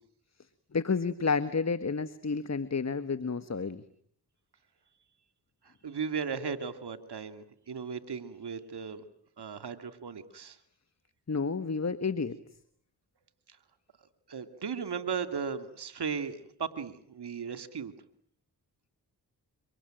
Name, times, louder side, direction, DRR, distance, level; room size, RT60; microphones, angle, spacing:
voice 1, 0.7-3.8 11.3-12.4, left 4 dB, 40° left, 13 dB, 1.6 m, -30 dB
voice 2, 5.6-9.0 9.4-10.6 14.3-17.9, right 6 dB, 70° right, 10 dB, 2.7 m, -36 dB
26.5 x 25.0 x 9.1 m, 0.64 s
cardioid pair, 45°, 41 cm